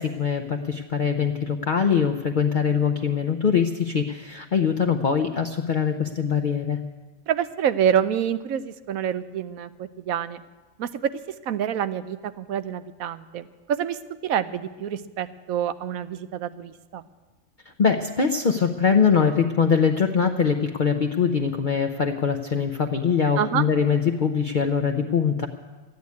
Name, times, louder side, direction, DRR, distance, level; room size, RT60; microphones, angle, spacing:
voice 1, 0.0-6.8 17.8-25.5, left 6 dB, 45° left, 4 dB, 0.7 m, -22 dB
voice 2, 7.3-10.4 10.8-11.1 11.4-17.0 23.4-23.7, right 9 dB, 90° right, 13 dB, 1.1 m, -27 dB
13.5 x 9.5 x 9.5 m, 1.3 s
omnidirectional pair, 1.4 m